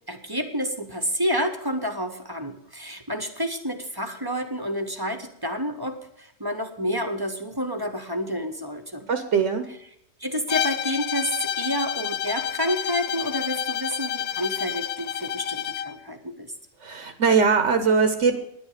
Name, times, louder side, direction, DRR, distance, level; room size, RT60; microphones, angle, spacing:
voice 1, 0.1-9.1 10.2-16.5, equal, 20° right, 6 dB, 1.0 m, -29 dB
voice 2, 9.1-9.6 16.8-18.4, right 5 dB, 65° right, 7 dB, 1.3 m, -21 dB
Bowed string instrument, 10.5-16.0, left 9 dB, 65° left, 0.8 m, -29 dB
10.0 x 9.8 x 6.6 m, 0.75 s
omnidirectional pair, 1.4 m